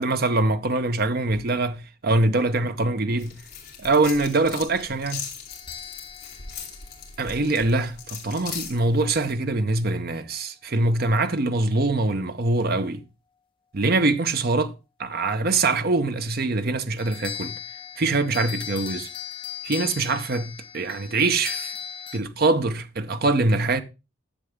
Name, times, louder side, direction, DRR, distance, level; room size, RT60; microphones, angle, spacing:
voice 1, 0.0-3.4 3.8-5.2 7.2-13.0 13.7-14.7 15.0-17.6 18.0-19.1 19.6-21.7 22.1-23.8, right 2 dB, 45° right, 0.7 m, -23 dB
sound 1, 3.2-9.3, left 7 dB, 50° left, 2.4 m, -39 dB
sound 2, 5.5-7.7 17.0-22.2, left 8 dB, 25° left, 0.9 m, -37 dB
9.9 x 6.8 x 3.6 m
head